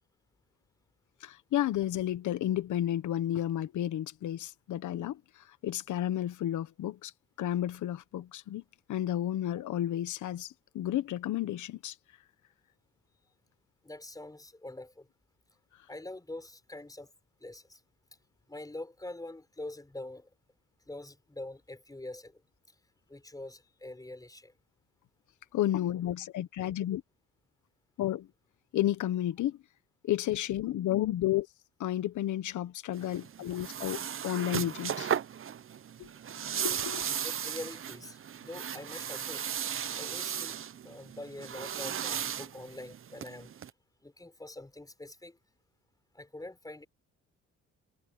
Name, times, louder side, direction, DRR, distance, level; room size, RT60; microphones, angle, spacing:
voice 1, 1.2-5.2 5.6-7.1 7.4-8.6 8.9-11.9 25.5-27.0 28.0-28.3 28.7-29.6 30.0-31.5 31.8-35.1 36.0-36.1 36.6-37.0, left 12 dB, 75° left, 1.4 m, -32 dB
voice 2, 13.8-15.1 15.9-17.1 17.4-17.8 18.5-20.3 20.9-22.3 23.1-24.5 37.2-39.4 40.0-40.6 40.8-43.5 44.0-45.4 46.1-46.9, left 2 dB, 10° left, 5.2 m, -44 dB
sound 1, 32.9-43.7, right 9 dB, 45° right, 0.9 m, -36 dB
cardioid pair, 90°, 30 cm